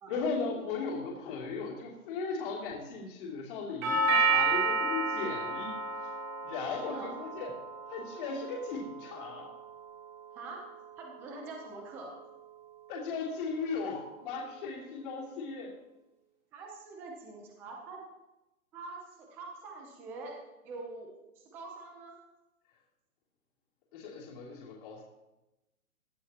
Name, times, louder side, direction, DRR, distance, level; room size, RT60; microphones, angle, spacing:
voice 1, 0.1-6.1 6.4-7.5 7.9-9.5 12.9-15.8 23.9-25.0, left 4 dB, 35° left, -3 dB, 2.9 m, -37 dB
Doorbell, 3.8-11.9, right 3 dB, 35° right, 3.4 m, -32 dB
voice 2, 10.3-10.7 11.0-12.2 16.5-18.0 18.7-20.4 20.6-22.2, right 3 dB, 5° right, 1 dB, 0.5 m, -45 dB
17.0 x 11.0 x 2.9 m, 0.99 s
hypercardioid pair, 155°, 43 cm